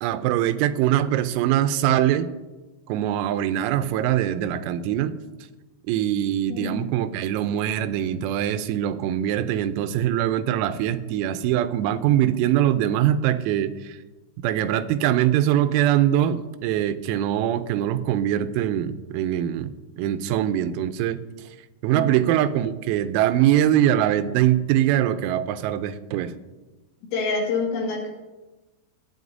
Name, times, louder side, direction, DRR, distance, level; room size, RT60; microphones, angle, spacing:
voice 1, 0.0-2.3 2.9-5.2 5.9-14.0 14.4-21.2 21.8-26.3, right 11 dB, 90° right, 10 dB, 3.4 m, -22 dB
voice 2, 6.5-6.8 21.9-22.3 27.0-28.1, left 4 dB, 70° left, 0 dB, 4.1 m, -27 dB
24.0 x 9.5 x 2.7 m, 1.1 s
omnidirectional pair, 6.0 m